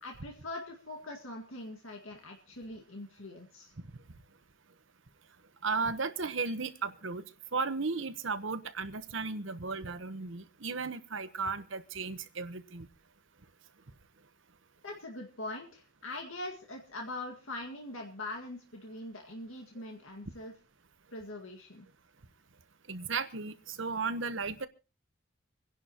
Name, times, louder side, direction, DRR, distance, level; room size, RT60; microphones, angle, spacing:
voice 1, 0.0-3.7 14.8-20.5 21.1-21.9, left 2 dB, 85° left, 2 dB, 2.0 m, -42 dB
voice 2, 5.6-7.2 7.5-12.9 22.9-24.7, right 4 dB, 70° right, 12 dB, 1.1 m, -35 dB
26.5 x 11.0 x 3.0 m, 0.31 s
head